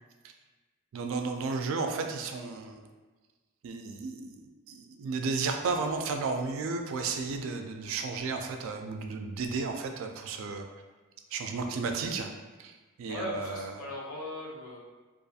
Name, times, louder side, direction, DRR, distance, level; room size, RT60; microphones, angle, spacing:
voice 1, 0.9-2.9 3.6-10.7 11.3-12.3 12.6-12.7 13.0-13.9, right 4 dB, 65° right, 4 dB, 0.3 m, -33 dB
voice 2, 13.1-14.8, left 1 dB, 85° left, -3 dB, 0.7 m, -38 dB
2.4 x 2.3 x 2.6 m, 1.3 s
head